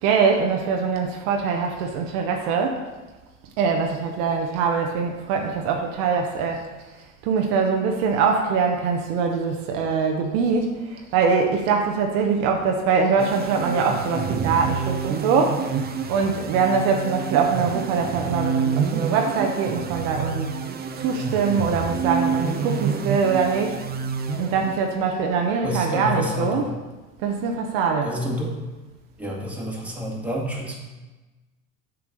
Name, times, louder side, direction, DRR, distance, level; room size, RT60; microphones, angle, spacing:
voice 1, 0.0-2.8 3.6-6.6 7.2-15.5 16.1-20.5 21.0-23.8 24.4-26.7 27.2-28.1, right 5 dB, 60° right, 2 dB, 1.1 m, -23 dB
sound 1, 13.2-25.0, right 6 dB, 25° right, 0.8 m, -28 dB
voice 2, 25.6-26.7 28.0-28.5 29.2-30.8, equal, 5° right, -3 dB, 2.0 m, -28 dB
6.9 x 4.7 x 6.5 m, 1.2 s
hypercardioid pair, 70°, 41 cm